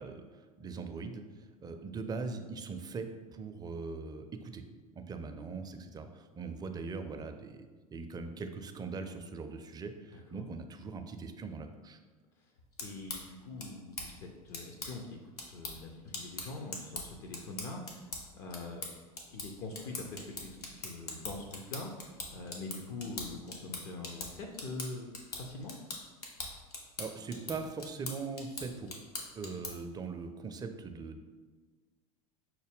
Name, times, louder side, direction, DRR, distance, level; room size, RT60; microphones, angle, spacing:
voice 1, 0.0-4.6 4.9-12.0 27.0-28.9 29.4-31.2, right 4 dB, 20° right, 7 dB, 0.4 m, -41 dB
voice 2, 10.1-10.5 12.4-12.5 12.8-18.9 19.3-25.8, left 3 dB, 60° left, 2 dB, 0.5 m, -44 dB
sound 1, 12.6-29.9, left 3 dB, 85° left, 0.8 m, -44 dB
5.7 x 2.1 x 3.5 m, 1.4 s
hypercardioid pair, 80°, 19 cm